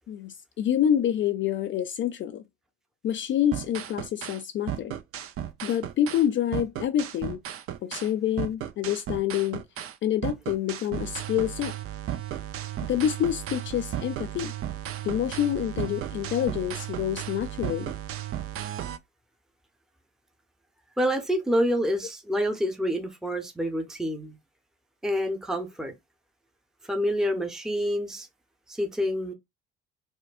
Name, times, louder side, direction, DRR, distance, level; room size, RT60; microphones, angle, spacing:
voice 1, 0.1-2.4 3.0-4.9 5.6-7.4 7.8-9.6 10.0-11.8 12.9-14.5 15.0-17.9, left 10 dB, 40° left, 0.4 m, -27 dB
sound 1, 3.5-4.4 4.7-6.3 6.5-8.1 8.4-10.0 10.2-19.0, right 11 dB, 45° right, 0.6 m, -34 dB
voice 2, 21.0-24.4 25.0-25.9 26.8-28.3 28.7-29.3, equal, ahead, 0.8 m, -27 dB
4.3 x 2.2 x 2.4 m
hypercardioid pair, 60°, 30 cm